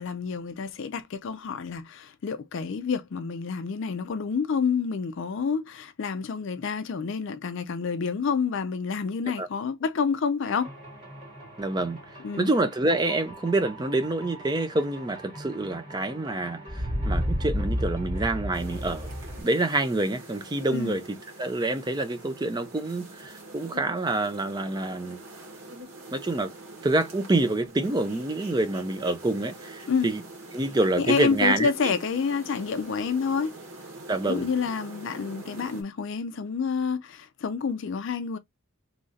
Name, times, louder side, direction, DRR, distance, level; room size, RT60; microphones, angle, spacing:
voice 1, 0.0-10.7 12.2-12.5 20.7-21.0 29.9-30.1 31.0-33.6 34.2-38.4, left 5 dB, 55° left, 0.4 m, -28 dB
sound 1, 10.4-19.4, equal, 35° right, 2.1 m, -34 dB
voice 2, 11.6-12.0 12.4-19.1 19.4-25.2 26.1-26.5 26.8-30.2 30.5-31.9 34.1-34.5, right 2 dB, 20° right, 0.4 m, -27 dB
sound 2, 18.5-35.8, right 2 dB, 80° right, 1.5 m, -45 dB
3.2 x 2.5 x 3.8 m
head